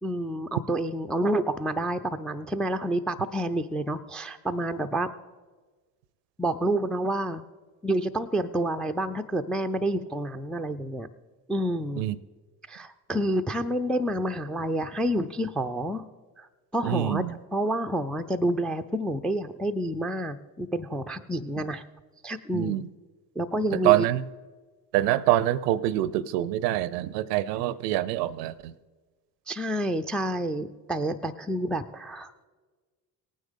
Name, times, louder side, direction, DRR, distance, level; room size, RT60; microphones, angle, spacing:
voice 1, 0.0-5.1 6.4-7.4 7.8-11.1 11.5-12.1 12.7-16.1 16.4-16.5 16.7-21.8 22.2-22.8 23.4-24.1 29.5-32.3, right 1 dB, ahead, 8 dB, 0.3 m, -29 dB
voice 2, 16.8-17.3 22.5-22.9 23.8-24.2 24.9-28.7, right 14 dB, 75° right, 19 dB, 0.5 m, -25 dB
18.0 x 9.4 x 3.6 m, 1.4 s
hypercardioid pair, 50°, 48 cm